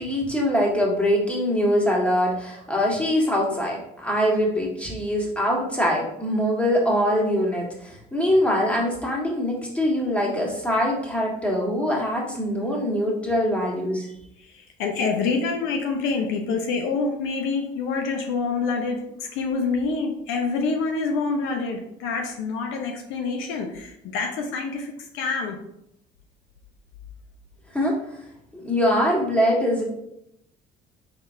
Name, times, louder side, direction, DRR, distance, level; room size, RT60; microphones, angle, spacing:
voice 1, 0.0-14.1 27.7-28.0 28.5-29.8, equal, 5° left, -2 dB, 1.6 m, -23 dB
voice 2, 14.8-19.0 19.3-25.6, left 4 dB, 75° left, 2 dB, 0.7 m, -26 dB
4.8 x 3.8 x 2.7 m, 0.79 s
hypercardioid pair, 65°, 20 cm